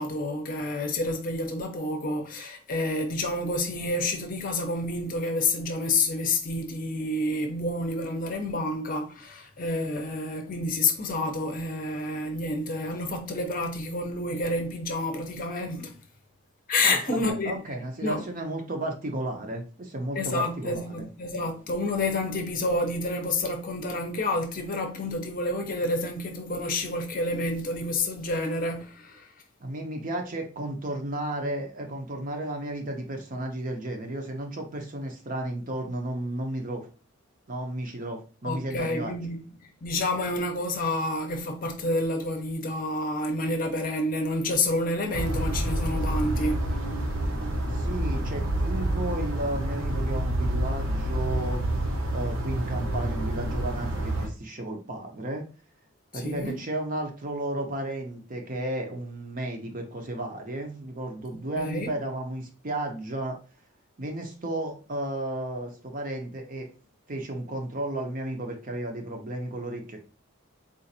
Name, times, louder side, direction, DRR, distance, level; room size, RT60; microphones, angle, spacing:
voice 1, 0.0-16.0 16.7-17.5 18.0-18.3 20.2-29.3 38.4-39.4 39.8-46.7 56.1-56.6 61.3-61.9, left 2 dB, 40° left, 0.6 m, -29 dB
voice 2, 16.8-21.1 29.6-36.9 37.5-39.2 47.7-51.6 52.1-55.4 56.1-63.4 64.0-66.7 67.1-70.0, right 1 dB, 40° right, 0.6 m, -33 dB
sound 1, 45.1-54.3, right 1 dB, 80° right, 0.9 m, -28 dB
3.9 x 2.5 x 2.7 m
head